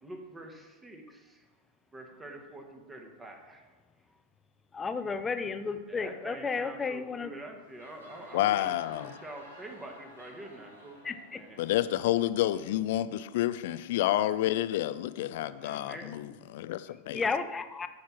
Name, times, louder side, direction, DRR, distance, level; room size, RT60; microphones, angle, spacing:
voice 1, 0.0-1.6 1.9-4.2 5.4-11.0 11.3-11.6 15.6-16.3, right 1 dB, 15° right, 3 dB, 1.6 m, -47 dB
voice 2, 4.7-7.3 11.0-11.4 17.1-17.9, left 4 dB, 15° left, 10 dB, 0.7 m, -33 dB
sound 1, 7.5-13.1, left 1 dB, 75° right, 2.6 m, -53 dB
voice 3, 8.3-9.1 11.6-16.3 16.5-17.2, left 13 dB, 50° left, 14 dB, 0.5 m, -29 dB
14.0 x 5.8 x 4.4 m, 1.1 s
figure-of-eight pair, 90°, 0 cm